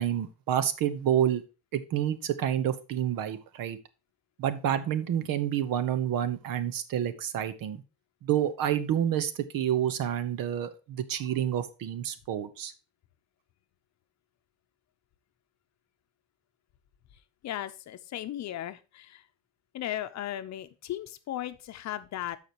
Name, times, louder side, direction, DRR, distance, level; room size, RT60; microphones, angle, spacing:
voice 1, 0.0-1.4 1.7-3.8 4.4-7.8 8.2-12.7, right 10 dB, 70° right, 12 dB, 1.1 m, -29 dB
voice 2, 17.4-19.2 19.7-22.4, left 12 dB, 50° left, 10 dB, 0.7 m, -36 dB
13.5 x 5.0 x 2.9 m, 0.30 s
cardioid pair, 180°, 35 cm